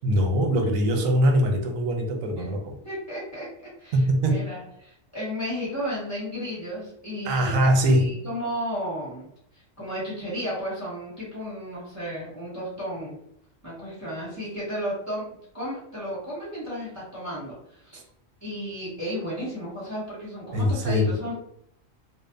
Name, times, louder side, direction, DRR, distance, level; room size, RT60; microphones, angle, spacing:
voice 1, 0.0-2.8 3.9-4.4 7.3-8.1 20.5-21.1, equal, 90° right, 3 dB, 1.0 m, -22 dB
voice 2, 2.8-3.5 3.8-9.3 9.5-13.2 13.6-15.3 15.5-18.0 18.4-21.4, equal, 15° left, -8 dB, 1.2 m, -33 dB
2.7 x 2.0 x 2.5 m, 0.72 s
omnidirectional pair, 1.4 m